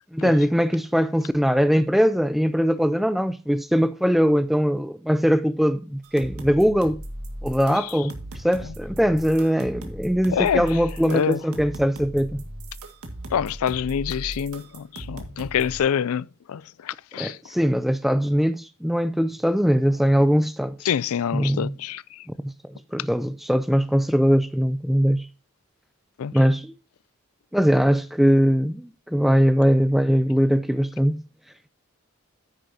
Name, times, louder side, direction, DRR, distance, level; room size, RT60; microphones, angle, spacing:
voice 1, 0.1-7.0 7.4-12.4 17.2-20.8 21.3-21.7 22.4-22.5 22.9-25.3 26.3-26.7 27.5-31.2, equal, ahead, 0.3 m, -21 dB
sound 1, 6.0-15.8, right 1 dB, 80° right, 1.8 m, -37 dB
voice 2, 7.7-8.0 10.3-11.4 13.3-17.5 20.8-22.3 26.2-26.3, left 8 dB, 80° left, 0.4 m, -27 dB
9.9 x 9.4 x 2.7 m
head